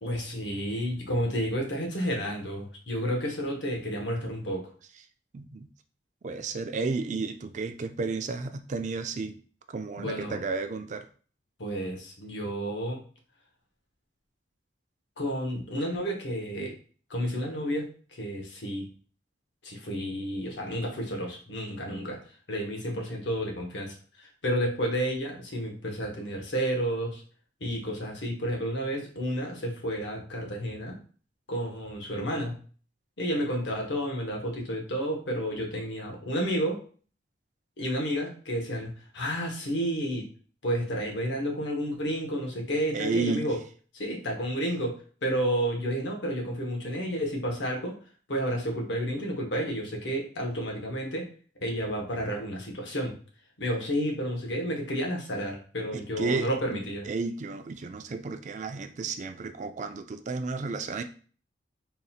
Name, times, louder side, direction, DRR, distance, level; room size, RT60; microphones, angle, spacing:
voice 1, 0.0-4.6 10.0-10.4 11.6-13.0 15.2-16.7 17.1-17.9 18.2-18.9 19.6-22.2 22.5-27.2 27.6-30.9 31.5-32.6 33.2-36.8 37.8-40.2 40.6-43.6 43.9-44.9 45.2-47.9 48.3-51.3 51.6-53.1 53.6-57.1, equal, 80° left, 1 dB, 1.2 m, -31 dB
voice 2, 5.3-5.7 6.2-9.4 9.7-11.1 42.9-43.4 55.9-56.8 57.1-61.0, right 4 dB, 40° right, 8 dB, 0.3 m, -32 dB
3.9 x 2.4 x 4.2 m, 0.41 s
head